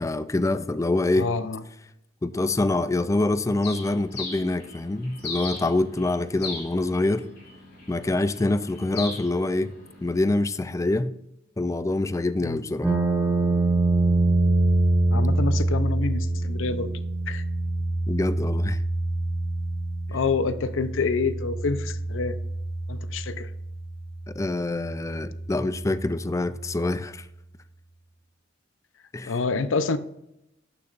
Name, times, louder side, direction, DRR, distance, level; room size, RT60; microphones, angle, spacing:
voice 1, 0.0-1.3 2.2-7.2 7.9-9.7 10.0-11.1 11.6-12.9 18.1-18.8 24.3-27.3 29.1-29.4, left 2 dB, 15° left, 0.4 m, -25 dB
voice 2, 1.1-1.6 12.4-12.6 15.1-16.9 17.3-17.4 20.1-22.4 22.9-23.5 29.3-30.0, left 4 dB, 80° left, 0.6 m, -27 dB
Bird, 3.6-10.3, left 3 dB, 55° left, 2.9 m, -39 dB
sound 1, 12.8-26.9, right 2 dB, 5° right, 1.3 m, -26 dB
12.0 x 6.8 x 2.5 m
head